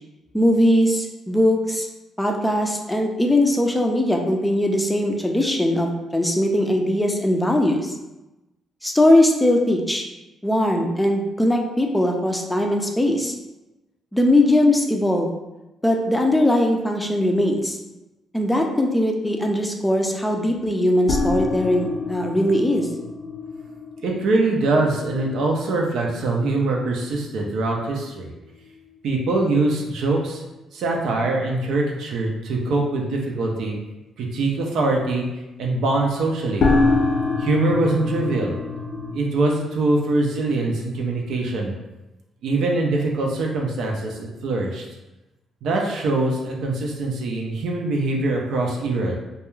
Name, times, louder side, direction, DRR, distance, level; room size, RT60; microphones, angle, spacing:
voice 1, 0.3-1.9 2.2-7.9 8.8-10.1 10.4-13.3 14.1-15.3 15.8-17.8 18.3-22.9, left 1 dB, 5° left, 2 dB, 0.4 m, -20 dB
sound 1, 21.1-27.7 28.0-28.1 28.5-28.6 36.6-39.1, left 3 dB, 70° left, 0.4 m, -26 dB
voice 2, 24.0-28.3 29.0-30.4 30.7-33.8 34.2-35.3 35.6-36.7 37.4-38.6 39.1-41.7 42.4-44.8 45.6-49.2, right 2 dB, 75° right, 0 dB, 0.4 m, -23 dB
2.3 x 2.2 x 3.0 m, 1.0 s
cardioid pair, 90°, 0 cm